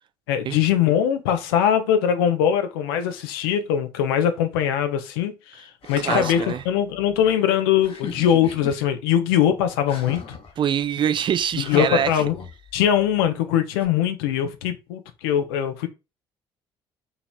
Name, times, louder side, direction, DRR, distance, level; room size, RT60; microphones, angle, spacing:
voice 1, 0.3-10.4 11.6-12.3 12.7-15.9, left 9 dB, 75° left, 0.5 m, -22 dB
sound 1, 5.8-6.6 7.8-8.8 9.9-10.5 11.6-12.8 13.8-13.9, left 5 dB, 50° left, 0.9 m, -33 dB
voice 2, 6.0-6.6 10.6-12.2, right 9 dB, 40° right, 0.4 m, -24 dB
2.9 x 2.8 x 2.3 m
figure-of-eight pair, 50°, 13 cm